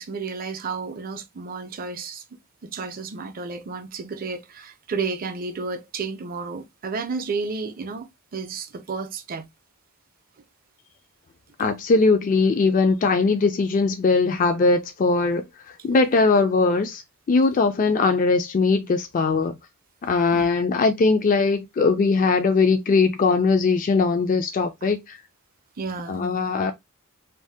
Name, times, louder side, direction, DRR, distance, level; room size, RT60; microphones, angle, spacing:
voice 1, 0.0-2.2 2.6-9.5 20.3-20.5 25.8-26.2, right 4 dB, 40° right, 0.5 m, -32 dB
voice 2, 11.6-15.4 15.8-17.0 17.3-19.6 20.0-25.2 26.1-26.7, left 4 dB, 35° left, 0.3 m, -20 dB
2.6 x 2.1 x 3.3 m
head